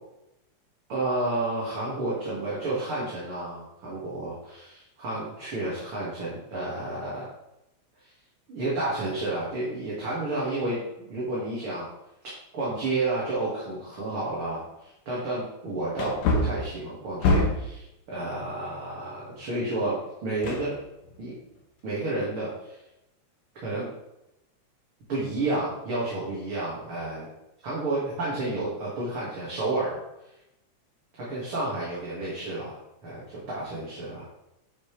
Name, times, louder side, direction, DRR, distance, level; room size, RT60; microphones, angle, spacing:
voice 1, 0.9-7.3 8.5-10.8 11.1-11.9 12.5-20.8 21.2-21.3 21.8-22.8 23.6-23.9 25.1-27.3 27.6-30.0 31.2-32.8 33.0-34.3, right 2 dB, 45° right, -8 dB, 3.0 m, -31 dB
Wood, 13.9-14.0 14.6-14.7 15.9-17.8 20.4-21.2 21.6-21.7, left 2 dB, 70° left, 2.3 m, -26 dB
11.0 x 6.0 x 3.4 m, 0.88 s
omnidirectional pair, 3.4 m